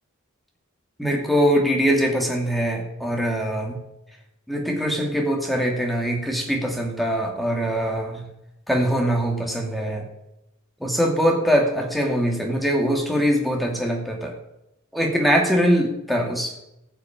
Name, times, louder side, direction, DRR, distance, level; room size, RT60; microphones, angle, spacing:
voice 1, 1.0-3.8 4.5-8.2 8.7-10.0 10.8-14.3 14.9-16.5, equal, ahead, 0 dB, 2.5 m, -22 dB
15.0 x 7.1 x 8.6 m, 0.89 s
head